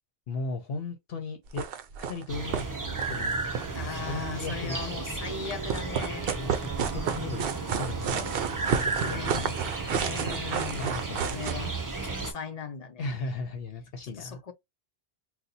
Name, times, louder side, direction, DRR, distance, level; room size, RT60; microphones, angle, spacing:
voice 1, 0.3-1.7 2.0-3.4 3.8-5.0 6.4-7.4 7.7-9.7 10.7-11.8 13.0-14.4, left 3 dB, 65° left, 0.9 m, -37 dB
Footsteps - Gritty Soil - Walk Fast then Run, 1.5-2.2 2.5-2.7 2.9-4.3 5.5-11.5, right 7 dB, 65° right, 0.7 m, -31 dB
sound 1, 2.3-12.3, right 4 dB, 25° right, 0.5 m, -34 dB
voice 2, 3.7-6.3 9.0-9.6 9.9-11.0 11.3-11.8 12.0-13.1 14.0-14.5, left 6 dB, 50° left, 0.5 m, -38 dB
4.0 x 2.3 x 2.6 m
omnidirectional pair, 1.1 m